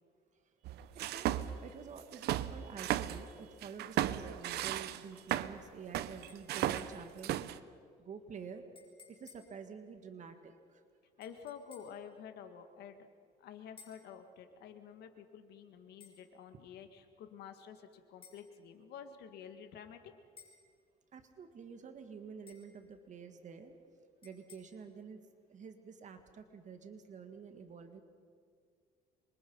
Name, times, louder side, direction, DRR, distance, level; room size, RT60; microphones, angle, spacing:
sound 1, 0.6-1.6 2.0-3.2 3.6-5.6 5.9-7.6, right 13 dB, 75° right, 0.8 m, -35 dB
voice 1, 0.9-7.4 8.0-8.7 9.1-10.8 21.1-23.8 24.2-25.2 25.5-28.0, right 6 dB, 45° right, 7 dB, 1.9 m, -49 dB
sound 2, 6.3-7.2 8.8-9.6 11.2-12.0 13.8-14.1 16.0-16.2 18.2-18.5 20.4-20.7 22.5-22.8 24.2-24.6, left 5 dB, 30° left, 6.3 m, -59 dB
voice 2, 11.2-13.1 13.4-20.1, left 7 dB, 75° left, 7 dB, 2.1 m, -50 dB
26.5 x 23.5 x 5.6 m, 2.1 s
cardioid pair, 110°, 17 cm